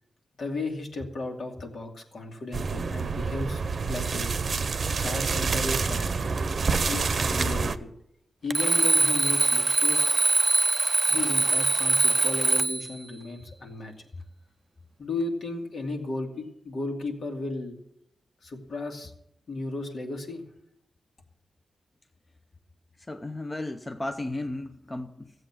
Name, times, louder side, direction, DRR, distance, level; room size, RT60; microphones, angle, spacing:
voice 1, 0.4-3.6 3.9-4.3 5.0-6.1 6.9-7.9 8.4-10.2 11.1-13.9 15.0-17.8 18.4-19.1 19.5-20.4, left 2 dB, 65° left, 2 dB, 2.4 m, -34 dB
sound 1, 2.5-7.8, right 4 dB, 55° right, 0.7 m, -27 dB
Alarm, 8.5-12.9, right 3 dB, 30° right, 0.5 m, -23 dB
voice 2, 23.1-25.3, left 2 dB, 20° left, 7 dB, 0.7 m, -34 dB
15.5 x 7.9 x 7.4 m, 0.77 s
wide cardioid pair, 115°, 0 cm